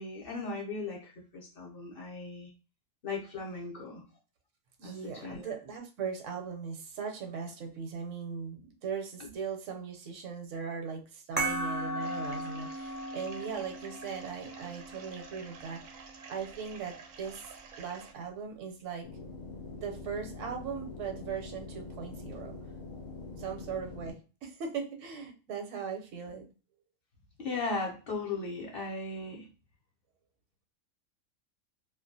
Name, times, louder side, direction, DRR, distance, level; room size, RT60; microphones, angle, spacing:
voice 1, 0.0-2.5 3.0-4.0 4.8-5.5 9.2-9.3 27.4-29.5, left 3 dB, 55° left, -1 dB, 0.8 m, -37 dB
voice 2, 4.8-15.8 16.3-19.1 19.8-22.6 23.4-26.5, right 6 dB, 80° right, 4 dB, 1.0 m, -39 dB
sound 1, 11.4-16.4, right 1 dB, 15° right, 0.3 m, -37 dB
sound 2, 12.0-18.1, right 5 dB, 65° right, 0.6 m, -50 dB
sound 3, 19.0-24.1, left 3 dB, 90° left, 0.3 m, -44 dB
2.4 x 2.2 x 2.6 m, 0.35 s
omnidirectional pair, 1.3 m